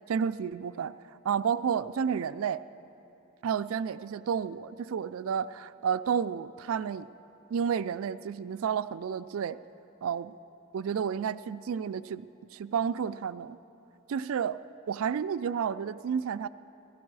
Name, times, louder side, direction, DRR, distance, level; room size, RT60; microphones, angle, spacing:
voice 1, 0.1-1.0 1.2-2.6 3.4-7.1 7.5-9.6 10.0-10.3 10.7-12.3 12.5-13.6 14.1-14.6 14.9-16.5, right 7 dB, 70° right, 13 dB, 0.3 m, -31 dB
15.5 x 15.5 x 4.7 m, 2.9 s
head